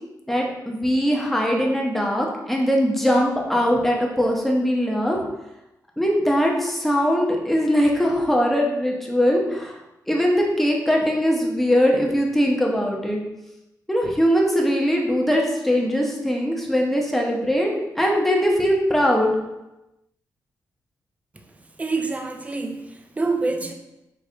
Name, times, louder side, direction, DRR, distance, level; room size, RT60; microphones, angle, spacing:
voice 1, 0.3-5.2 6.0-9.8 10.1-13.2 13.9-17.7 18.0-19.4, equal, 5° left, -1 dB, 0.8 m, -21 dB
voice 2, 21.8-23.7, right 3 dB, 20° right, 5 dB, 0.4 m, -26 dB
5.0 x 3.1 x 2.8 m, 0.95 s
cardioid pair, 100°, 7 cm